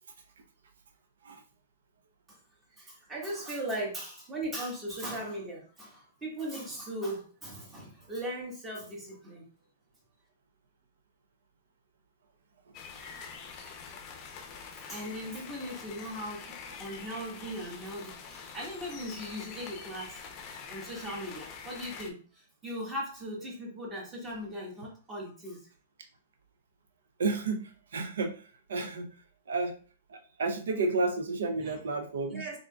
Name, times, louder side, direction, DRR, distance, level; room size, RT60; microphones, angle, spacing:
voice 1, 2.8-9.4 14.7-16.5 16.8-20.2 20.7-25.6 31.6-31.8 32.3-32.6, right 1 dB, 15° right, -2 dB, 1.4 m, -38 dB
sound 1, 12.7-22.1, left 6 dB, 30° left, 0.6 m, -45 dB
voice 2, 27.2-29.2 29.5-29.7 30.1-32.5, right 3 dB, 80° right, 5 dB, 0.5 m, -31 dB
3.6 x 3.6 x 2.3 m, 0.40 s
hypercardioid pair, 145°, 0 cm